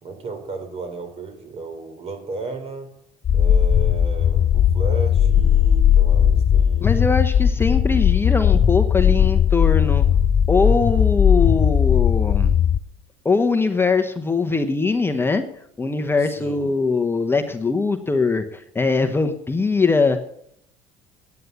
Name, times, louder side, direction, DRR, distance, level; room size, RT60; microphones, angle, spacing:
voice 1, 0.0-2.9 3.3-7.1 9.1-9.4 16.2-16.7, right 3 dB, 45° right, 7 dB, 3.8 m, -34 dB
sound 1, 3.2-12.8, left 9 dB, 40° left, 0.4 m, -17 dB
voice 2, 6.8-10.1 10.5-12.5 13.2-15.4 15.8-20.2, left 4 dB, 15° left, 7 dB, 1.0 m, -21 dB
9.6 x 9.4 x 8.2 m, 0.72 s
supercardioid pair, 90°, 15 cm